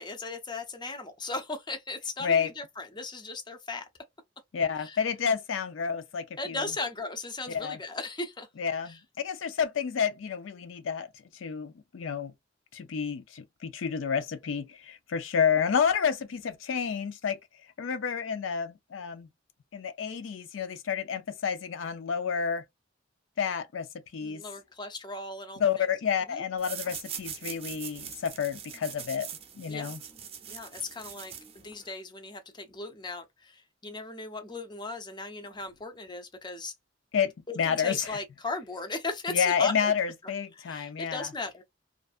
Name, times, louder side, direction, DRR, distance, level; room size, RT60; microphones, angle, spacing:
voice 1, 0.0-3.8 4.8-5.0 6.4-8.5 8.9-9.0 24.2-25.8 26.3-26.4 29.7-29.9 30.5-36.7 37.5-39.9 40.2-41.6, left 3 dB, 25° left, 0.6 m, -37 dB
voice 2, 4.5-6.6 7.5-7.8 8.6-11.1 11.4-12.3 12.7-17.4 17.8-19.3 19.7-22.6 23.4-23.9 24.1-24.4 25.6-29.3 29.6-30.0 37.1-38.2 39.3-41.3, left 7 dB, 85° left, 0.4 m, -29 dB
sound 1, 26.6-31.9, right 8 dB, 30° right, 0.6 m, -42 dB
2.6 x 2.3 x 2.4 m
head